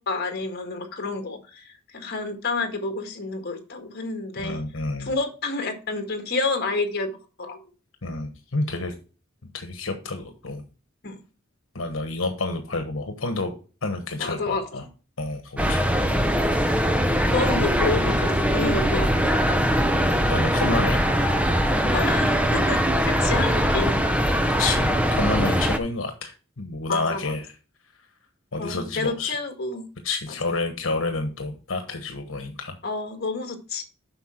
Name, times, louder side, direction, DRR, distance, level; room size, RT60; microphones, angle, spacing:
voice 1, 0.0-4.6 5.0-7.6 11.0-11.2 14.2-14.6 17.3-19.2 21.9-22.8 23.1-24.0 26.9-27.4 28.6-29.8 32.8-33.8, left 3 dB, 55° left, 5 dB, 1.7 m, -29 dB
voice 2, 4.4-5.1 8.0-8.9 9.5-10.6 11.7-13.5 13.8-14.8 15.2-15.8 20.2-21.0 24.6-27.4 28.5-29.3 30.0-32.7, left 3 dB, 80° left, 6 dB, 1.3 m, -29 dB
sound 1, 15.6-25.8, equal, 5° right, 0.7 m, -21 dB
7.9 x 5.9 x 4.4 m, 0.34 s
head